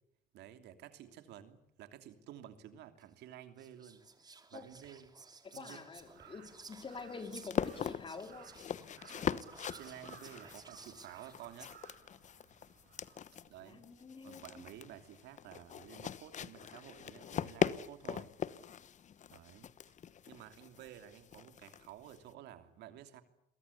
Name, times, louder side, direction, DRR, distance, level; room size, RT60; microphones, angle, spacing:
voice 1, 0.3-4.0 4.5-5.1 5.5-5.9 9.1-9.5 9.7-11.7 13.5-13.8 14.2-18.3 19.3-19.7 20.3-23.2, right 11 dB, 80° right, 3.0 m, -52 dB
Whispering, 3.0-3.1 3.6-11.7, right 4 dB, 25° right, 3.0 m, -56 dB
voice 2, 5.4-8.5 13.6-14.7, left 4 dB, 30° left, 4.4 m, -47 dB
sound 1, 6.0-22.3, left 8 dB, 45° left, 1.1 m, -41 dB
Crow, 6.0-13.4, right 8 dB, 65° right, 7.4 m, -59 dB
28.5 x 23.0 x 8.4 m
cardioid pair, 110°, 17 cm